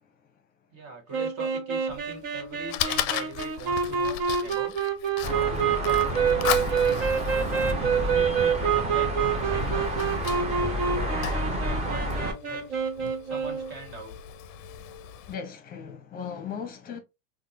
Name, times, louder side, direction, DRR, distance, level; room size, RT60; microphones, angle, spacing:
voice 1, 0.7-4.8 5.3-7.1 7.8-10.1 10.6-12.9 13.2-14.1, right 3 dB, 40° right, 1.6 m, -41 dB
sound 1, 1.1-13.7, right 6 dB, 65° right, 1.3 m, -27 dB
Fire, 1.9-15.3, left 10 dB, 45° left, 0.5 m, -37 dB
sound 2, 5.2-12.3, equal, 15° right, 0.9 m, -30 dB
voice 2, 15.3-17.0, left 7 dB, 20° left, 0.9 m, -37 dB
3.5 x 2.2 x 2.8 m
supercardioid pair, 125°, 40 cm